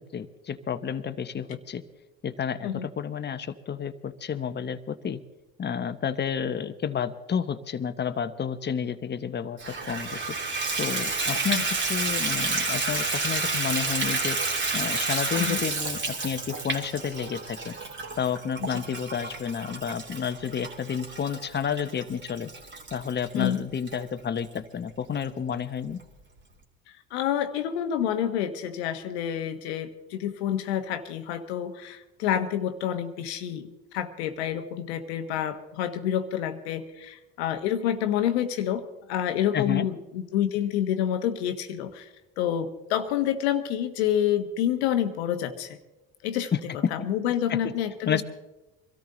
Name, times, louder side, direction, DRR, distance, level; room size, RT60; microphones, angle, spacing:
voice 1, 0.1-1.8 2.2-5.2 5.6-10.2 10.8-11.6 11.9-14.4 14.7-17.8 18.2-22.5 22.9-26.0 39.5-39.9 46.5-47.1 47.5-47.7 48.1-48.2, left 7 dB, 35° left, 11 dB, 1.0 m, -30 dB
Water tap faucet / Bathtub (filling or washing), 9.6-24.0 24.5-24.6 25.1-25.2 25.5-25.6, right 3 dB, 35° right, 2.8 m, -30 dB
voice 2, 27.1-42.1 42.4-45.8 46.2-46.5 46.9-48.2, left 10 dB, 90° left, 8 dB, 1.2 m, -28 dB
23.5 x 13.5 x 3.9 m, 1.0 s
supercardioid pair, 80°, 32 cm